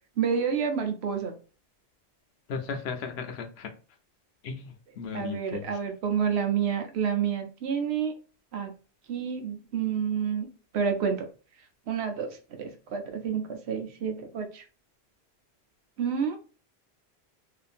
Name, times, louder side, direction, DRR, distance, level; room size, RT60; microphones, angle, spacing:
voice 1, 0.2-1.3 5.1-8.1 8.5-8.7 9.1-10.5 10.7-11.3 11.9-14.6 16.0-16.4, right 7 dB, 75° right, 5 dB, 0.9 m, -29 dB
voice 2, 2.5-3.7 4.4-5.7, left 6 dB, 75° left, 6 dB, 0.8 m, -36 dB
2.7 x 2.4 x 2.5 m, 0.36 s
omnidirectional pair, 1.1 m